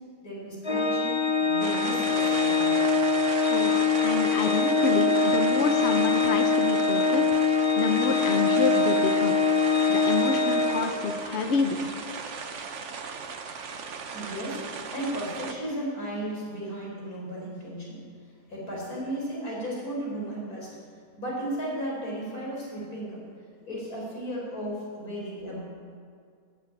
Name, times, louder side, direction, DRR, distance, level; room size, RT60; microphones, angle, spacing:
voice 1, 0.2-2.8 14.1-18.0 18.5-20.8 21.2-23.2 23.7-25.7, right 1 dB, 75° left, -4 dB, 5.3 m, -35 dB
Organ, 0.6-11.4, left 4 dB, 35° left, 0.4 m, -24 dB
sound 1, 1.6-15.5, right 5 dB, 55° right, 1.2 m, -37 dB
voice 2, 3.5-9.4 9.9-11.9, left 4 dB, 50° left, 6 dB, 1.0 m, -28 dB
13.5 x 10.5 x 9.1 m, 2.2 s
omnidirectional pair, 1.6 m